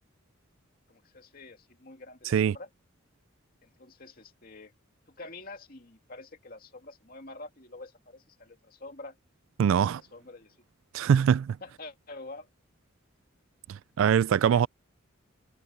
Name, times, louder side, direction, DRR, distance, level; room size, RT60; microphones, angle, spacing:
voice 1, 0.9-2.7 3.6-4.7 5.1-9.2 9.6-10.6 11.6-12.5 14.3-14.6, left 2 dB, 45° left, 2.6 m, -47 dB
voice 2, 2.2-2.6 9.6-10.0 10.9-11.6 13.7-14.7, right 8 dB, 70° right, 0.3 m, -23 dB
head